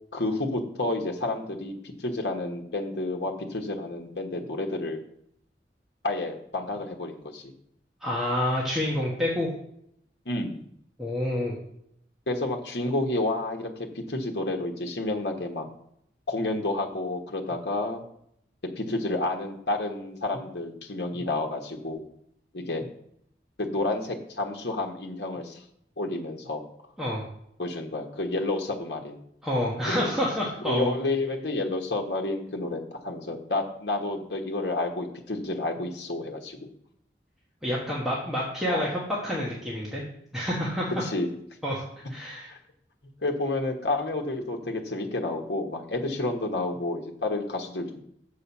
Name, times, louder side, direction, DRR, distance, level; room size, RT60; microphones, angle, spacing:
voice 1, 0.1-5.0 6.0-7.5 10.2-10.6 12.3-15.7 16.3-18.0 18.7-22.0 22.5-22.9 23.6-25.6 26.0-26.6 27.6-29.2 29.9-30.1 30.6-36.7 38.7-38.9 41.0-41.3 42.5-42.6 43.2-48.0, left 2 dB, 75° left, 2 dB, 1.2 m, -30 dB
voice 2, 8.0-9.5 11.0-11.6 27.0-27.2 29.4-30.9 37.6-40.0 40.3-41.0 41.6-41.8 42.1-42.5, left 1 dB, 5° right, -6 dB, 1.4 m, -28 dB
6.9 x 5.0 x 7.1 m, 0.73 s
head